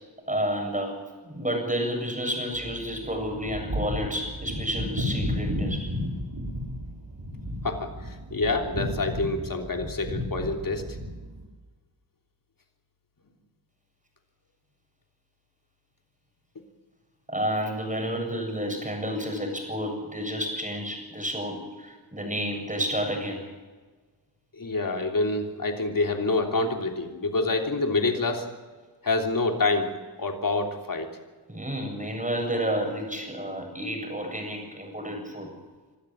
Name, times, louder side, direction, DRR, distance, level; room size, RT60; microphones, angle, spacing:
voice 1, 0.3-5.9 17.3-23.4 31.5-35.5, equal, 20° right, 3 dB, 7.6 m, -30 dB
sound 1, 2.5-11.4, left 1 dB, 65° right, 6.5 m, -33 dB
voice 2, 7.6-10.8 24.6-28.5 29.0-29.9 30.2-31.1, left 3 dB, 55° left, 3 dB, 3.3 m, -27 dB
25.0 x 13.0 x 9.0 m, 1.4 s
wide cardioid pair, 65°, 41 cm